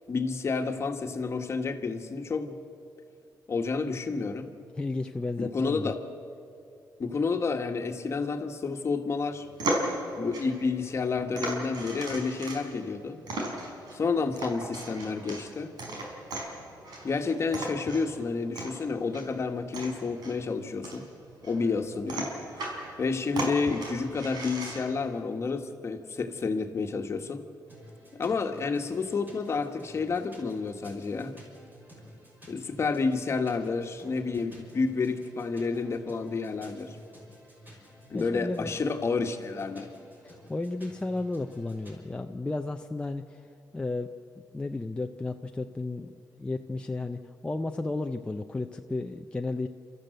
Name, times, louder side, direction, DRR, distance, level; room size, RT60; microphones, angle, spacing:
voice 1, 0.1-2.5 3.5-4.5 5.4-6.0 7.0-9.5 10.2-13.2 13.9-15.7 17.0-21.0 21.4-22.3 23.0-27.4 28.1-31.3 32.5-37.0 38.1-39.9, left 4 dB, 40° left, 6 dB, 1.6 m, -30 dB
voice 2, 4.8-5.9 38.1-38.7 40.2-43.5 43.7-44.1 44.4-49.7, left 2 dB, 15° left, 4 dB, 0.7 m, -33 dB
sound 1, 9.3-25.1, right 1 dB, 80° right, 4.9 m, -37 dB
sound 2, 27.7-41.9, equal, 25° right, 6.0 m, -52 dB
30.0 x 13.5 x 7.9 m, 2.6 s
cardioid pair, 115°, 7 cm